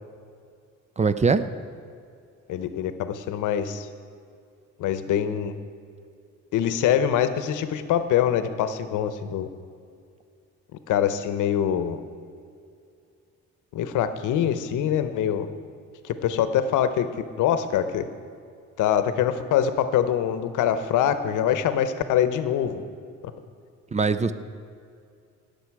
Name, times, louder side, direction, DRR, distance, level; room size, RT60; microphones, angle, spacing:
voice 1, 1.0-1.4 23.9-24.3, right 4 dB, 25° right, 12 dB, 0.5 m, -21 dB
voice 2, 2.5-3.9 4.8-5.5 6.5-9.5 10.9-12.0 13.7-15.5 16.0-17.1 17.4-18.0 18.8-22.8, left 9 dB, 85° left, 11 dB, 0.8 m, -24 dB
17.5 x 6.8 x 4.7 m, 2.4 s
cardioid pair, 90°, 30 cm